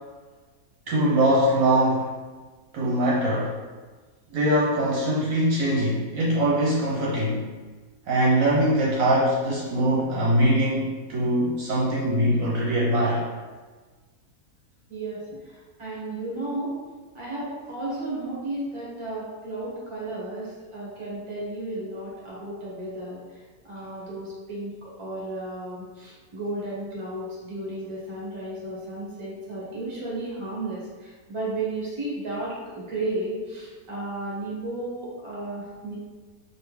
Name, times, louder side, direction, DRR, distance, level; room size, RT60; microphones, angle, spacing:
voice 1, 0.9-2.2 2.7-3.6 4.3-7.5 8.1-13.2, right 1 dB, 70° right, -5 dB, 1.0 m, -22 dB
voice 2, 14.9-16.7 17.1-36.0, right 2 dB, 25° right, -6 dB, 1.0 m, -33 dB
3.3 x 2.6 x 3.1 m, 1.4 s
omnidirectional pair, 1.6 m